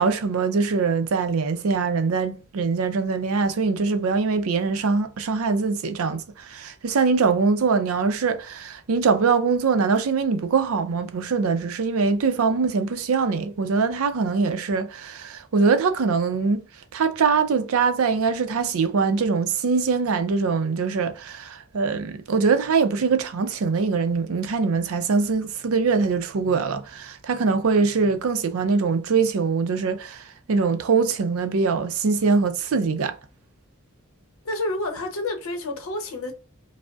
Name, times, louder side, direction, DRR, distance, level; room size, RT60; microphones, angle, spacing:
voice 1, 0.0-16.6 16.9-33.2, right 4 dB, 75° right, 0.5 m, -23 dB
voice 2, 34.4-36.3, left 2 dB, 70° left, 0.8 m, -29 dB
4.9 x 2.0 x 2.3 m
head